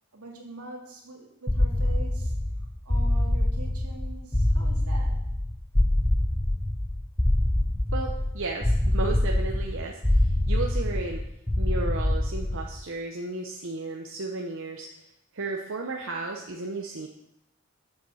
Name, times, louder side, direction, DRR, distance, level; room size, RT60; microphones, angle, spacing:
voice 1, 0.1-2.3 2.8-5.2, right 2 dB, 80° right, 0 dB, 2.1 m, -43 dB
sound 1, 1.5-12.8, left 1 dB, 10° left, 0.4 m, -25 dB
voice 2, 7.9-11.2 11.6-14.9 15.3-17.1, right 3 dB, 60° right, 1 dB, 0.8 m, -34 dB
7.2 x 7.0 x 6.3 m, 0.83 s
head